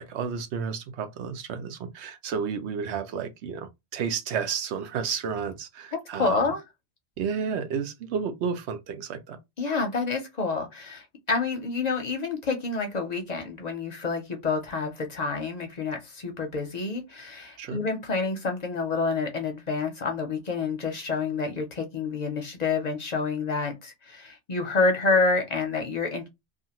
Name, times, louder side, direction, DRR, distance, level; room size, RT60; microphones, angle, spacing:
voice 1, 0.0-6.5 7.2-9.4 17.6-17.8, right 6 dB, 90° right, 0.9 m, -31 dB
voice 2, 6.2-6.6 9.6-26.3, left 4 dB, 50° left, 0.6 m, -28 dB
2.5 x 2.4 x 2.8 m
omnidirectional pair, 1.1 m